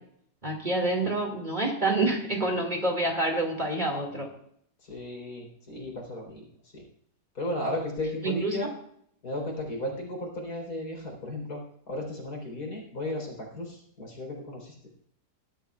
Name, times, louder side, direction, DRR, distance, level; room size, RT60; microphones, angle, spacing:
voice 1, 0.4-4.3 8.2-8.6, right 2 dB, 25° right, 1 dB, 2.3 m, -27 dB
voice 2, 4.8-6.5 6.7-6.8 7.3-8.7 9.2-14.7, left 1 dB, 70° left, 0 dB, 4.5 m, -35 dB
20.5 x 12.0 x 2.4 m, 0.69 s
omnidirectional pair, 1.7 m